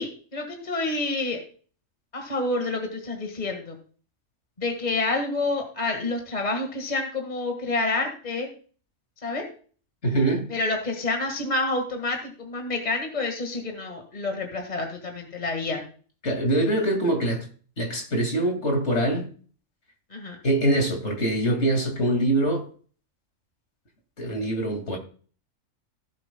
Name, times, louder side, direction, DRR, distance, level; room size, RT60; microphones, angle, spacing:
voice 1, 0.0-1.4 2.1-3.8 4.6-8.5 9.2-9.5 10.5-15.8 20.1-20.4, left 2 dB, 30° left, 1.9 m, -28 dB
voice 2, 10.0-10.5 16.2-17.5 17.8-19.3 20.4-22.7 24.2-25.0, right 1 dB, 60° left, 2.6 m, -24 dB
17.0 x 7.6 x 2.2 m
omnidirectional pair, 1.3 m